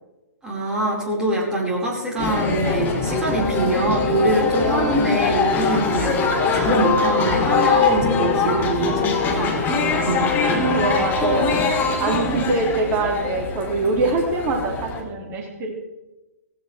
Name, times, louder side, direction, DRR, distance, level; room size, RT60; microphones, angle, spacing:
voice 1, 0.4-9.0 9.3-10.6, right 1 dB, 10° right, -4 dB, 5.1 m, -24 dB
sound 1, 2.2-15.0, left 4 dB, 20° left, 2.9 m, -22 dB
voice 2, 8.8-9.2 10.8-11.6 12.0-15.7, right 3 dB, 25° right, 1 dB, 2.8 m, -24 dB
17.5 x 16.0 x 3.5 m, 1.0 s
figure-of-eight pair, 125°, 9 cm